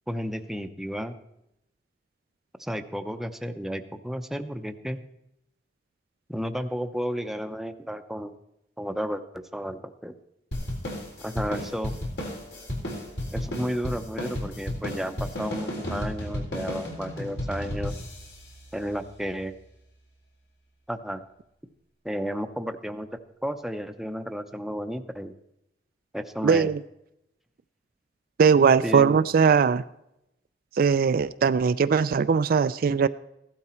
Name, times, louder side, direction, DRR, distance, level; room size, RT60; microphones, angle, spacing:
voice 1, 0.1-1.2 2.6-5.0 6.3-8.3 8.8-10.1 11.2-11.9 13.3-17.9 18.7-19.5 20.9-21.2 22.0-23.1 23.4-25.3 26.1-26.7 28.8-29.2, equal, ahead, 8 dB, 0.7 m, -32 dB
sound 1, 10.5-19.3, left 1 dB, 70° left, 4.0 m, -34 dB
voice 2, 26.4-26.8 28.4-29.8 30.8-33.1, right 6 dB, 55° right, 13 dB, 0.4 m, -20 dB
15.0 x 12.0 x 4.4 m, 0.83 s
head